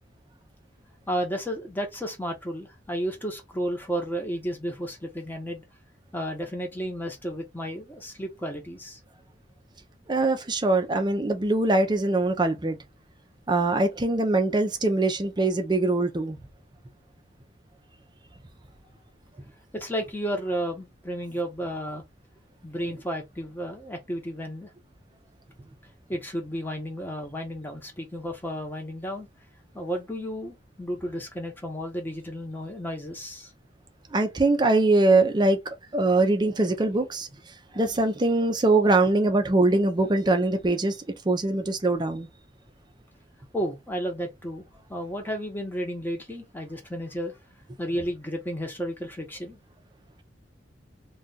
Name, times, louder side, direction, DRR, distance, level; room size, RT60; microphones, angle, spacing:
voice 1, 1.1-5.6 6.1-9.0 19.7-22.0 22.6-24.7 26.1-29.3 29.7-33.5 43.5-47.3 47.8-49.6, equal, 10° left, 0.9 m, -32 dB
voice 2, 10.1-12.8 13.5-16.4 34.1-37.3 37.7-41.0 41.3-42.3, right 2 dB, 25° right, 0.5 m, -22 dB
2.4 x 2.3 x 3.9 m
head